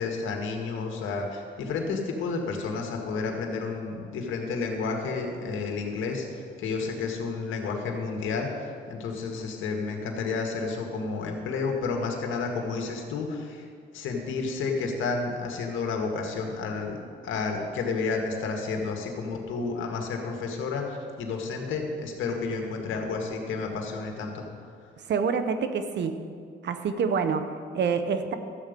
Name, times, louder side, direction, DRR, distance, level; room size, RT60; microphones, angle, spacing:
voice 1, 0.0-8.5 8.9-13.6 13.9-17.0 17.2-20.9 21.2-24.4, left 4 dB, 80° left, 2 dB, 1.8 m, -31 dB
voice 2, 25.1-26.2 26.6-28.3, right 5 dB, 60° right, 9 dB, 1.0 m, -27 dB
13.0 x 8.1 x 5.2 m, 2.1 s
cardioid pair, 90°, 20 cm